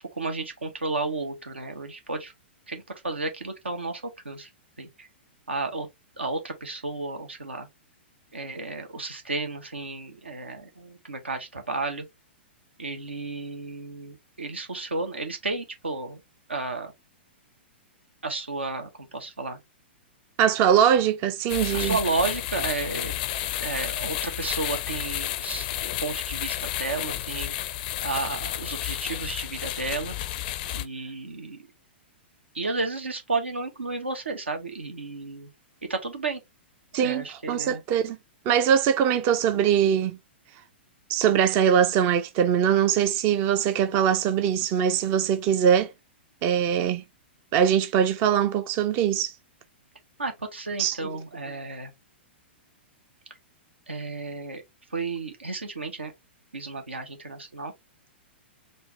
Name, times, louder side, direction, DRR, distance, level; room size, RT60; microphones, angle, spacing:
voice 1, 0.1-2.3 2.7-4.5 4.8-5.1 5.5-5.9 6.2-7.7 8.3-12.0 12.8-16.2 16.5-16.9 18.2-19.6 21.7-23.1 23.6-27.5 28.0-30.1 30.7-31.6 32.5-35.5 35.9-36.4 36.9-37.8 50.2-51.9 53.9-54.6 54.9-56.1 56.5-57.7, right 3 dB, 80° right, 1.1 m, -32 dB
voice 2, 20.4-21.9 36.9-38.2 38.5-40.2 41.1-45.9 46.4-47.0 47.5-49.3 50.8-51.0, right 8 dB, 35° right, 0.5 m, -22 dB
sound 1, 21.5-30.9, left 13 dB, 45° left, 0.4 m, -31 dB
4.4 x 2.5 x 3.2 m
figure-of-eight pair, 110°, 6 cm